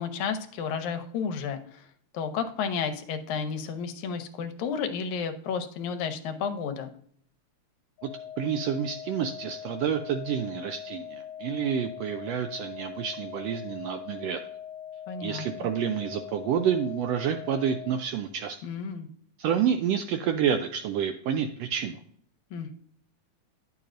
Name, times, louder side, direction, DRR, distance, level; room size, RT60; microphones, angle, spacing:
voice 1, 0.0-1.9 2.1-6.9 15.1-15.7 18.6-19.1 22.5-22.7, left 6 dB, 80° left, 7 dB, 2.1 m, -32 dB
sound 1, 8.0-18.0, left 9 dB, 65° left, 2.0 m, -42 dB
voice 2, 8.4-14.4 15.2-18.6 19.4-22.0, right 8 dB, 80° right, 7 dB, 1.4 m, -29 dB
10.5 x 6.9 x 2.5 m, 0.62 s
omnidirectional pair, 3.3 m